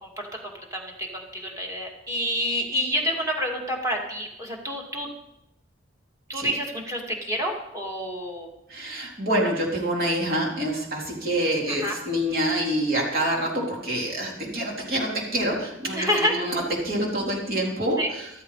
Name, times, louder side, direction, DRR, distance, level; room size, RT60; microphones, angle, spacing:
voice 1, 0.0-5.1 6.3-8.5 11.7-12.0 15.9-16.4 18.0-18.1, equal, 15° right, 0 dB, 2.6 m, -28 dB
voice 2, 8.7-18.3, right 1 dB, 50° right, -2 dB, 3.7 m, -26 dB
14.0 x 13.5 x 4.2 m, 0.85 s
head